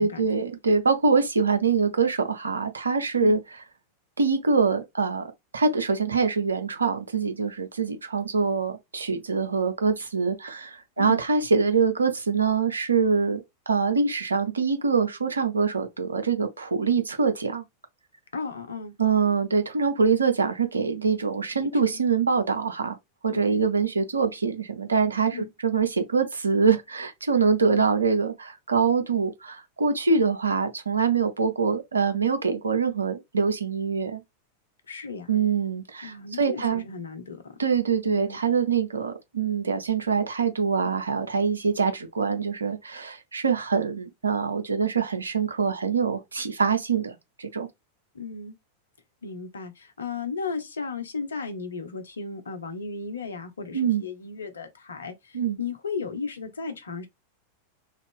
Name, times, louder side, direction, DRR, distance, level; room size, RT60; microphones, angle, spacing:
voice 1, 0.0-3.4 4.2-5.3 5.5-13.4 13.7-17.6 19.0-23.0 23.2-34.2 35.3-36.8 37.6-47.7 53.7-54.0 55.3-55.6, right 5 dB, 75° right, 0.6 m, -24 dB
voice 2, 18.3-18.9 21.6-21.7 23.3-23.7 25.3-25.5 27.7-27.8 34.9-35.3 36.0-37.6 38.0-38.4 48.1-48.6 49.2-57.1, left 5 dB, 70° left, 0.7 m, -35 dB
2.5 x 2.4 x 3.6 m
figure-of-eight pair, 90°, 0 cm